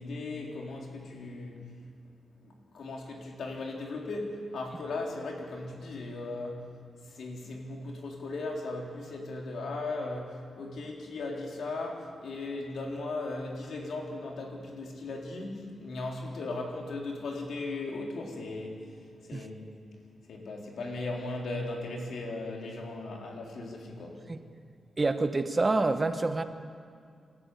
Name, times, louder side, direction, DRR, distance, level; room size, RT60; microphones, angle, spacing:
voice 1, 0.0-1.6 2.4-6.7 7.1-18.8 19.3-19.7 20.3-24.2, left 2 dB, 80° left, 0 dB, 3.8 m, -37 dB
voice 2, 25.0-26.4, right 3 dB, 25° right, 9 dB, 1.1 m, -27 dB
27.0 x 13.5 x 8.3 m, 2.3 s
wide cardioid pair, 110°, 0 cm